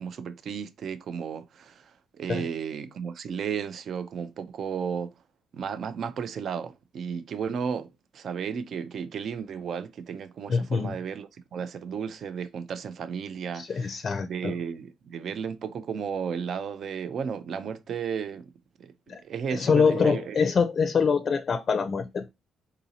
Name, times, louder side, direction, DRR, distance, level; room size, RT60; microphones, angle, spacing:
voice 1, 0.0-5.1 5.5-18.5 18.8-18.9 19.2-20.4, right 7 dB, 60° right, 0.4 m, -34 dB
voice 2, 10.5-10.9 13.5-14.5 19.1-19.2 19.5-22.3, left 5 dB, 45° left, 0.4 m, -25 dB
3.9 x 2.7 x 2.8 m
cardioid pair, 90°, 0 cm